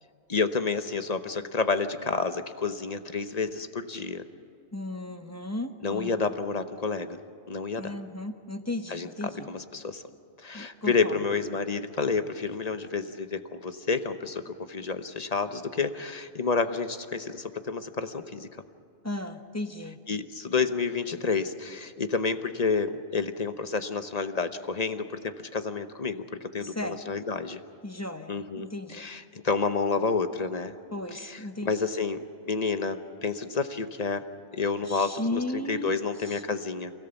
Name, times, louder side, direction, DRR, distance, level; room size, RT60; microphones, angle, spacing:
voice 1, 0.3-4.2 5.8-7.2 7.5-7.9 8.9-10.0 10.4-18.5 20.1-27.6 28.3-30.7 31.1-31.4 31.6-34.2 34.5-36.9, left 4 dB, 40° left, 9 dB, 1.0 m, -30 dB
voice 2, 4.7-6.3 7.8-9.5 10.5-11.2 19.0-20.0 26.6-27.0 27.8-29.0 30.9-31.7 34.9-36.4, left 1 dB, 15° left, 6 dB, 1.0 m, -35 dB
28.0 x 17.0 x 7.1 m, 2.5 s
omnidirectional pair, 1.2 m